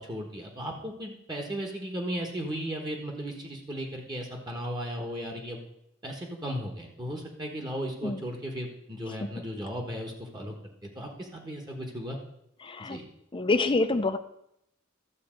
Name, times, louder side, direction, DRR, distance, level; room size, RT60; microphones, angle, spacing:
voice 1, 0.0-5.6 6.0-10.5 10.9-12.2 12.8-13.0, equal, 20° right, 0 dB, 1.2 m, -36 dB
voice 2, 12.6-13.0 13.3-14.2, left 3 dB, 25° left, 9 dB, 0.6 m, -26 dB
12.5 x 4.1 x 7.5 m, 0.77 s
head